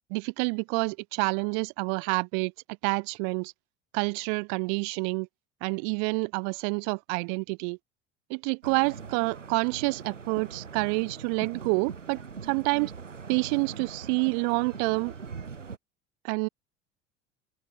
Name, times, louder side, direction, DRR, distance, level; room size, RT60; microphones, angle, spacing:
voice 1, 0.1-2.5 2.8-3.5 3.9-5.3 5.6-7.8 8.3-12.9 13.3-15.1 16.2-16.5, right 40 dB or more, 55° right, 1.4 m, -28 dB
sound 1, 8.6-15.8, right 5 dB, 90° right, 7.2 m, -42 dB
open air
figure-of-eight pair, 75°, 36 cm